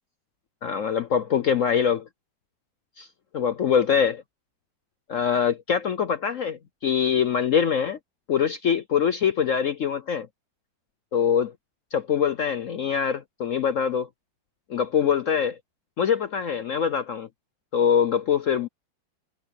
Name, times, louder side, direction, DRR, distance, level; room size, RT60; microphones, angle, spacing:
voice 1, 0.6-2.1 3.0-3.1 3.3-4.2 5.1-8.0 8.3-10.3 11.1-11.5 11.9-14.1 14.7-15.6 16.0-17.3 17.7-18.7, left 7 dB, 60° left, 0.8 m, -23 dB
omnidirectional pair, 2.1 m